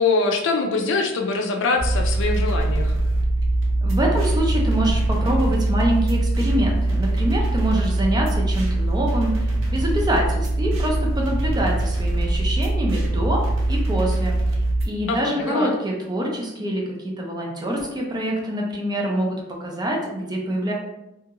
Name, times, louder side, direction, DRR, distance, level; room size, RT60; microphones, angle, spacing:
voice 1, 0.0-3.0 15.1-15.7, left 3 dB, 65° left, 4 dB, 0.4 m, -23 dB
sound 1, 1.8-14.9, right 2 dB, 80° right, 0.6 m, -22 dB
voice 2, 3.8-14.3 14.8-20.7, right 1 dB, 20° right, -1 dB, 0.5 m, -25 dB
2.8 x 2.7 x 2.4 m, 0.91 s
head